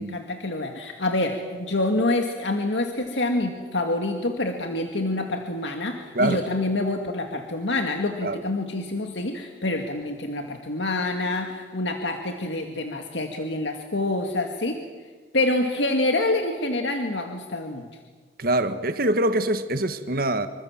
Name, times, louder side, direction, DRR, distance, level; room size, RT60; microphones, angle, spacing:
voice 1, 0.0-14.8 15.3-17.9, left 2 dB, 85° left, 2.1 m, -26 dB
voice 2, 18.4-20.5, right 1 dB, 55° right, 1.6 m, -24 dB
27.0 x 24.5 x 7.5 m
head